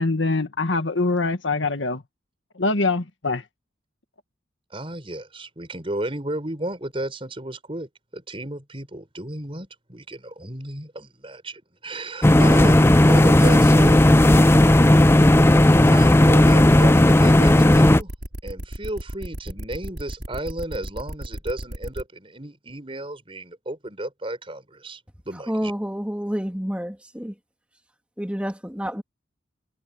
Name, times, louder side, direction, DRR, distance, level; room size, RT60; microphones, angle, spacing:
voice 1, 0.0-2.0 2.6-3.4, left 3 dB, 85° left, 1.7 m, -23 dB
voice 2, 4.7-14.6 15.8-18.1 18.4-25.7, right 1 dB, 30° right, 5.4 m, -33 dB
sound 1, 12.2-18.0, left 1 dB, 15° left, 0.4 m, -14 dB
sound 2, 12.5-22.0, equal, 60° right, 5.5 m, -34 dB
voice 3, 25.5-27.3 28.2-29.0, equal, 5° right, 2.8 m, -29 dB
head